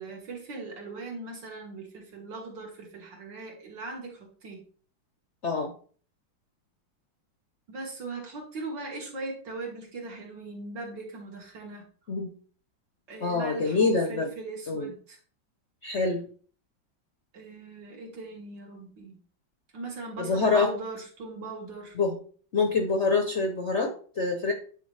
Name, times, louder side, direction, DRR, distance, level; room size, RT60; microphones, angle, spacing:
voice 1, 0.0-4.6 7.7-11.8 13.1-15.2 17.3-19.2 19.7-22.0, right 3 dB, 70° right, 0 dB, 2.4 m, -39 dB
voice 2, 13.2-14.3 14.7-14.9 15.8-16.2 20.2-20.7 22.0-22.2 22.5-24.5, left 4 dB, 50° left, 4 dB, 0.8 m, -25 dB
8.9 x 4.2 x 3.3 m, 0.42 s
omnidirectional pair, 2.1 m